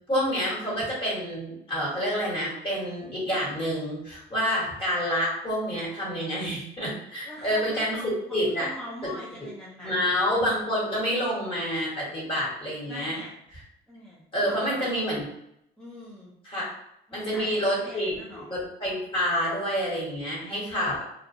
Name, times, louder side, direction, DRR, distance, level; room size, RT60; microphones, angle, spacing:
voice 1, 0.1-7.9 8.3-8.7 9.8-13.2 14.3-15.2 16.4-16.6 17.1-21.0, equal, 30° left, -6 dB, 1.4 m, -28 dB
voice 2, 7.2-10.1 12.9-13.3 13.9-14.9 15.8-16.3 17.1-18.6, equal, 5° left, -6 dB, 0.5 m, -42 dB
2.4 x 2.4 x 2.7 m, 0.77 s
cardioid pair, 110°, 17 cm